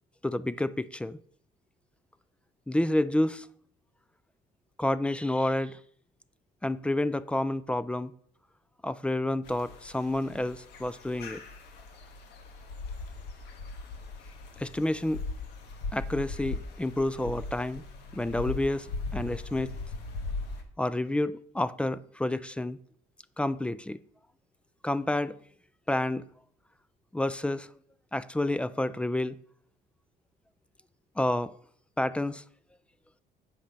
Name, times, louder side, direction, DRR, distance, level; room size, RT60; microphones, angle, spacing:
voice 1, 0.2-1.2 2.7-3.5 4.8-5.8 6.6-8.1 8.8-11.4 14.6-15.2 15.9-17.8 18.1-19.7 20.8-22.8 23.4-24.0 24.8-25.4 25.9-26.3 27.1-27.7 28.1-29.4 31.2-31.5 32.0-32.4, left 1 dB, 5° left, 0.3 m, -29 dB
sound 1, 9.4-20.6, left 3 dB, 80° left, 1.2 m, -39 dB
7.5 x 5.8 x 5.1 m
cardioid pair, 110°, 17 cm